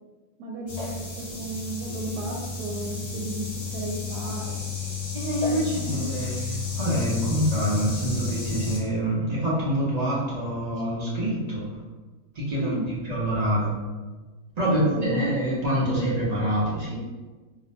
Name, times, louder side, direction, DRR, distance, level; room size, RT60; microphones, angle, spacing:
voice 1, 0.4-3.4 3.7-4.6 5.5-6.0 12.6-12.8 14.7-15.2, right 1 dB, 80° right, -1 dB, 1.1 m, -33 dB
sound 1, 0.7-8.8, left 5 dB, 45° left, 1.1 m, -32 dB
voice 2, 5.1-11.6 12.3-12.7 13.1-13.7 14.6-16.9, right 1 dB, 55° right, -7 dB, 0.4 m, -26 dB
2.8 x 2.1 x 4.1 m, 1.3 s
omnidirectional pair, 1.6 m